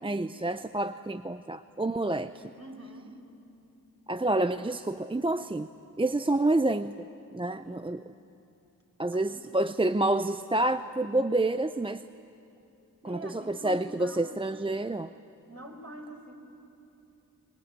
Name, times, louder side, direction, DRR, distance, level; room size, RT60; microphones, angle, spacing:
voice 1, 0.0-2.4 4.1-5.7 6.0-6.9 7.3-8.0 9.0-12.0 13.0-15.1, right 2 dB, 15° right, 11 dB, 0.6 m, -28 dB
voice 2, 2.5-3.2 7.6-7.9 9.2-9.6 13.0-14.4 15.5-16.3, right 1 dB, 40° right, 2 dB, 5.2 m, -45 dB
25.0 x 21.5 x 8.9 m, 2.8 s
cardioid pair, 40°, 37 cm